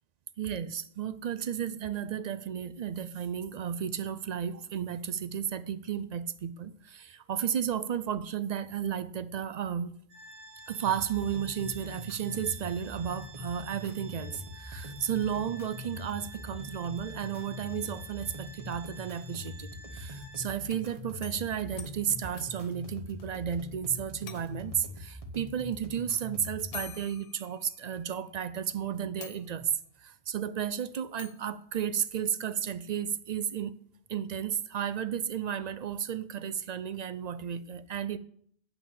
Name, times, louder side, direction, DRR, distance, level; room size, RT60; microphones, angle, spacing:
voice 1, 0.4-9.9 10.7-29.7 30.0-33.8 34.1-38.2, right 8 dB, 55° right, 0.5 m, -33 dB
Organ, 10.1-20.7, right 1 dB, 85° right, 3.4 m, -51 dB
sound 1, 10.8-26.9, left 2 dB, 35° right, 1.2 m, -43 dB
sound 2, 20.6-23.6 23.9-24.0 24.3-24.8 25.9-26.0 26.7-28.1 28.7-28.8 29.2-29.9 31.2-31.5, left 9 dB, 50° left, 0.5 m, -48 dB
8.4 x 6.0 x 6.9 m
omnidirectional pair, 1.1 m